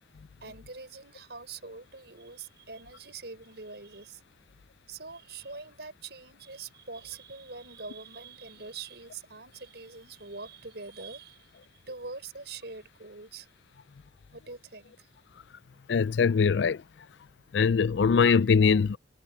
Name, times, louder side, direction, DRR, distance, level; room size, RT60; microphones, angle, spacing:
voice 1, 0.4-4.2 4.9-13.5 14.3-15.1, right 4 dB, 65° right, 5.6 m, -44 dB
voice 2, 15.9-16.8 17.5-19.0, left 5 dB, 75° left, 0.4 m, -22 dB
head